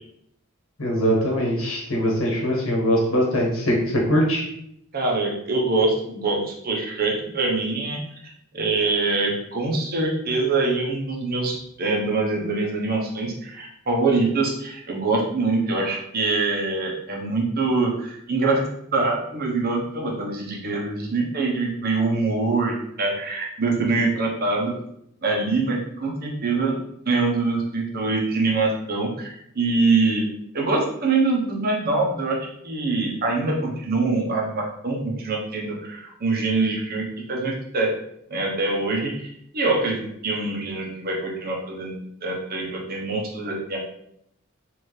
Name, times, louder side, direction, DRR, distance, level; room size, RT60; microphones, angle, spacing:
voice 1, 0.8-4.5, equal, 90° left, -2 dB, 1.5 m, -22 dB
voice 2, 4.9-8.0 8.5-24.8 25.2-26.8 27.1-30.3 30.5-32.4 32.6-37.9 38.3-43.8, right 3 dB, 50° right, -1 dB, 1.0 m, -24 dB
4.5 x 2.8 x 3.2 m, 0.73 s
head